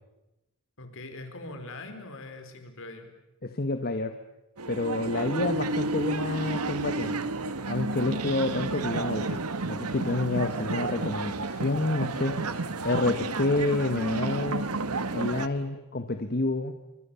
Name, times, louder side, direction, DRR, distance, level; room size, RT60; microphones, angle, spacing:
voice 1, 0.8-3.1 15.5-15.7, left 2 dB, 60° left, 7 dB, 4.5 m, -42 dB
voice 2, 3.4-4.1 4.7-7.3 7.6-9.4 9.6-14.7 15.1-16.7, left 2 dB, 45° left, 8 dB, 1.4 m, -29 dB
sound 1, 4.6-15.5, right 3 dB, 85° right, 1.5 m, -31 dB
29.5 x 25.5 x 7.0 m, 0.97 s
head